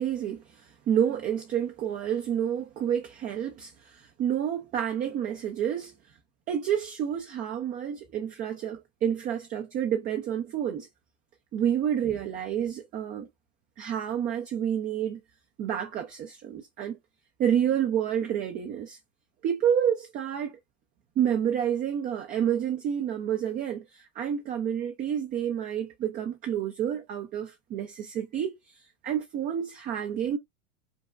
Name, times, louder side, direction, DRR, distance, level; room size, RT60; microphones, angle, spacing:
voice 1, 0.0-5.9 6.5-10.9 11.5-13.3 13.8-15.2 15.6-17.0 17.4-19.0 19.4-20.5 21.2-30.4, right 9 dB, 20° right, 0.3 m, -29 dB
5.2 x 2.2 x 2.3 m
hypercardioid pair, 105°, 41 cm